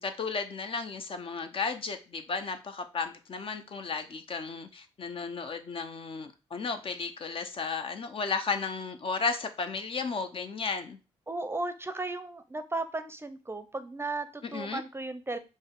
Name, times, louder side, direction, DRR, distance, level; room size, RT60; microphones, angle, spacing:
voice 1, 0.0-11.0 14.4-14.8, left 4 dB, 50° left, 7 dB, 0.6 m, -34 dB
voice 2, 11.3-15.4, right 2 dB, 20° right, 10 dB, 0.6 m, -35 dB
5.2 x 2.1 x 3.7 m, 0.31 s
supercardioid pair, 50°, 12 cm